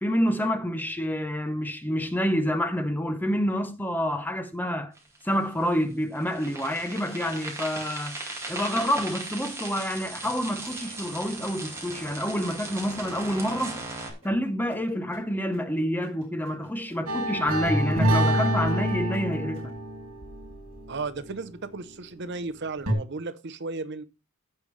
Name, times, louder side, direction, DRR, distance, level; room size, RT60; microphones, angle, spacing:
voice 1, 0.0-4.9 5.2-8.2 8.5-13.8 14.2-19.7, equal, 10° left, 0.8 m, -28 dB
sound 1, 4.9-5.8 6.1-14.1, right 3 dB, 15° right, 2.2 m, -37 dB
sound 2, 6.7-7.5 8.5-9.1 10.2-10.9 12.0-19.7, right 1 dB, 30° right, 5.2 m, -54 dB
sound 3, 17.1-22.0 22.9-23.0, equal, 85° right, 2.4 m, -27 dB
voice 2, 20.9-24.0, right 3 dB, 50° right, 0.7 m, -34 dB
15.0 x 5.1 x 3.2 m
head